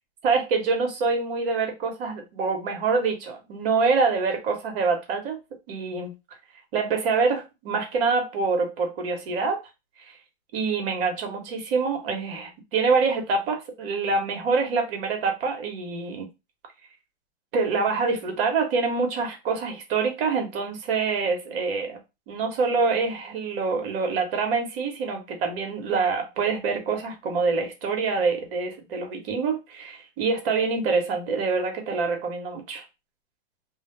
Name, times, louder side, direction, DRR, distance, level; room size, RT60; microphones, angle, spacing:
voice 1, 0.2-5.4 5.7-6.1 6.7-9.6 10.1-10.2 10.5-16.3 17.5-22.0 22.3-32.8, right 4 dB, 55° right, 1.1 m, -25 dB
2.3 x 2.1 x 3.0 m
hypercardioid pair, 125°, 33 cm